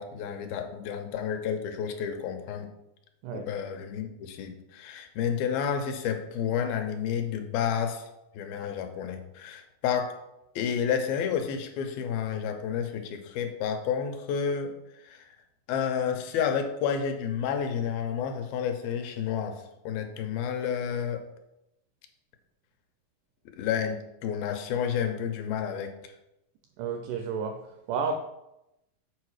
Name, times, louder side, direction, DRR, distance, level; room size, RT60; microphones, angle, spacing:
voice 1, 0.0-2.7 3.3-8.1 8.3-10.2 10.6-15.3 15.7-21.2 23.6-26.1, left 7 dB, 90° left, 2.6 m, -30 dB
voice 2, 26.8-28.2, right 5 dB, 85° right, 1.8 m, -32 dB
6.8 x 4.7 x 4.8 m
omnidirectional pair, 4.1 m